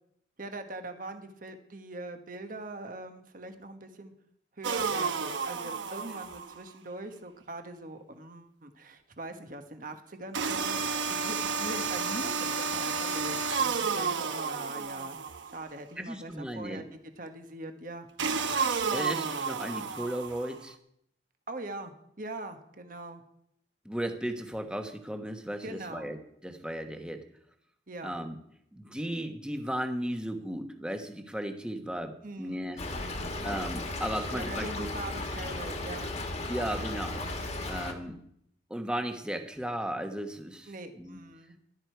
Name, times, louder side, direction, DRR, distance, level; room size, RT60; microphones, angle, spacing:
voice 1, 0.4-4.1 4.6-10.8 11.1-15.2 15.5-16.8 17.2-18.1 21.5-23.2 25.6-26.1 27.9-28.1 32.2-32.6 33.0-33.3 34.3-36.1 40.7-41.6, right 2 dB, 50° right, 6 dB, 1.4 m, -42 dB
sound 1, 4.6-6.6 10.3-15.6 18.2-20.6, right 5 dB, 85° right, 0.9 m, -31 dB
voice 2, 16.0-16.8 18.9-20.8 23.8-27.2 28.0-28.4 28.7-32.8 33.4-34.9 36.5-37.2 37.6-38.2 38.7-41.2, right 1 dB, 5° right, 5 dB, 1.3 m, -35 dB
Stream / Trickle dribble, 32.8-37.9, left 2 dB, 35° left, 1.7 m, -35 dB
16.0 x 12.0 x 4.7 m, 0.73 s
head